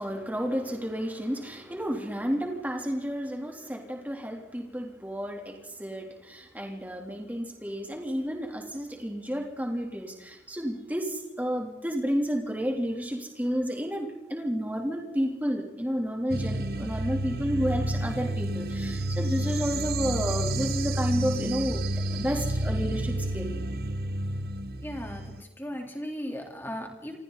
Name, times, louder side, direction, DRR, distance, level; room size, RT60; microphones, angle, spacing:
voice 1, 0.0-23.6, equal, 10° right, 1 dB, 3.4 m, -31 dB
sound 1, 16.3-25.4, right 1 dB, 55° right, 1.1 m, -30 dB
voice 2, 24.8-27.2, equal, 10° left, 1 dB, 3.7 m, -37 dB
28.0 x 23.5 x 4.2 m, 0.97 s
head